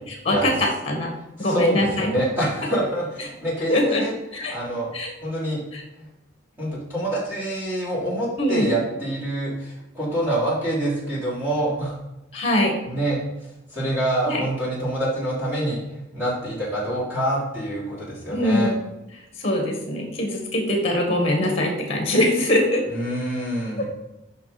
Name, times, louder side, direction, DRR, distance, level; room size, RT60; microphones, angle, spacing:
voice 1, 0.1-1.1 1.4-2.1 3.7-4.0 4.3-4.6 4.9-5.1 5.7-5.8 8.4-8.8 12.3-12.7 14.3-14.5 18.3-18.7 19.4-22.8 23.8-23.9, left 1 dB, 30° left, 2 dB, 1.7 m, -22 dB
voice 2, 1.4-4.1 4.5-4.9 5.2-5.6 6.0-6.1 6.6-12.0 12.9-13.2 13.7-15.8 16.1-18.7 22.9-23.8, right 1 dB, 10° right, -8 dB, 3.2 m, -26 dB
6.7 x 5.7 x 5.1 m, 0.95 s
head